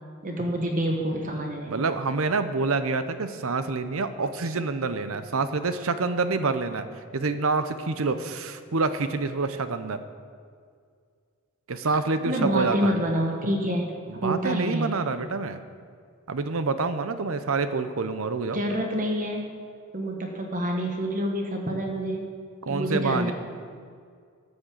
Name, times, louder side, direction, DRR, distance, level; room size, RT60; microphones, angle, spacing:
voice 1, 0.2-1.9 12.2-13.9 14.2-14.9 18.5-19.5 19.9-22.2 22.7-23.3, equal, 40° right, 1 dB, 1.2 m, -27 dB
voice 2, 1.7-6.9 7.1-10.0 11.7-13.0 14.1-15.6 16.3-18.6 22.6-23.3, right 3 dB, 70° right, 11 dB, 0.7 m, -27 dB
13.0 x 6.4 x 7.5 m, 2.1 s
head